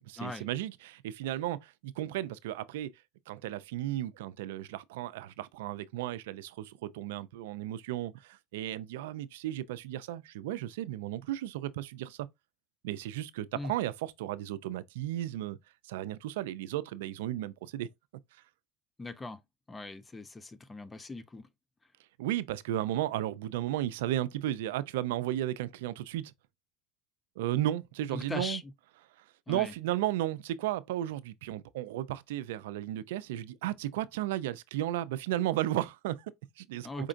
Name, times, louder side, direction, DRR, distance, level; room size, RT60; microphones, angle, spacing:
voice 1, 0.0-2.9 3.3-12.3 12.8-15.6 15.9-17.9 22.2-26.3 27.4-28.6 29.2-37.1, right 13 dB, 90° right, 0.4 m, -34 dB
voice 2, 19.0-19.4 19.7-21.5 28.1-28.7 29.5-29.7 36.8-37.1, left 2 dB, 20° left, 0.6 m, -40 dB
5.1 x 3.7 x 2.5 m
supercardioid pair, 95°, 0 cm